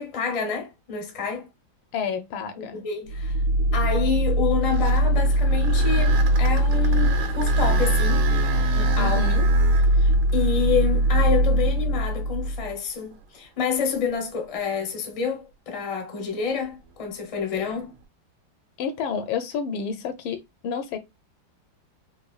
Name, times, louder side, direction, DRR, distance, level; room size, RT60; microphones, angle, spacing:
voice 1, 0.0-1.5 2.6-3.4 3.7-8.2 8.7-9.2 10.0-17.9, left 6 dB, 45° left, 0.4 m, -28 dB
voice 2, 1.9-2.8 9.0-9.5 18.8-21.0, left 6 dB, 85° left, 1.4 m, -30 dB
Energy vortexes field sci-fi pulses, 3.1-12.7, right 1 dB, 65° right, 1.0 m, -21 dB
sound 1, 4.5-12.5 13.1-13.2 13.9-14.1 17.6-18.0, right 8 dB, 85° right, 1.5 m, -34 dB
4.1 x 2.6 x 2.3 m
omnidirectional pair, 2.2 m